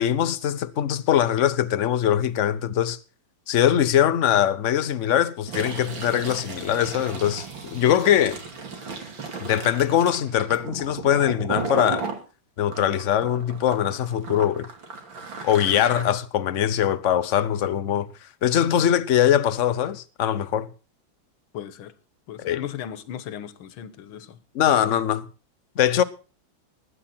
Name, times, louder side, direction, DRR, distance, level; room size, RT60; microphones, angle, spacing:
voice 1, 0.0-3.0 3.5-8.4 9.4-12.0 12.6-14.7 15.4-18.1 18.4-20.7 22.4-22.6 24.5-25.3 25.8-26.0, left 10 dB, 55° left, 0.8 m, -22 dB
Fill (with liquid), 5.4-12.2 12.7-16.0, right 4 dB, 70° right, 3.2 m, -35 dB
voice 2, 21.5-21.9 22.3-24.4, left 10 dB, 85° left, 1.8 m, -36 dB
20.5 x 9.8 x 4.3 m
omnidirectional pair, 2.2 m